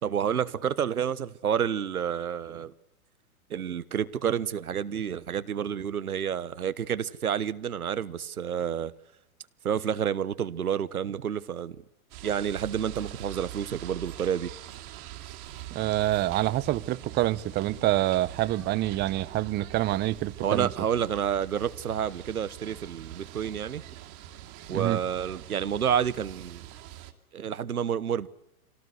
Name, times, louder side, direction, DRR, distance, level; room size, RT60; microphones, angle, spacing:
voice 1, 0.0-2.7 3.5-8.9 9.6-11.8 12.2-14.5 20.4-23.8 24.7-26.7 27.3-28.3, right 8 dB, 90° right, 1.2 m, -29 dB
sound 1, 12.1-27.1, right 13 dB, 45° right, 2.8 m, -44 dB
voice 2, 15.7-20.7 24.7-25.0, right 15 dB, 25° right, 0.7 m, -26 dB
25.0 x 17.5 x 8.1 m
hypercardioid pair, 115°, 43 cm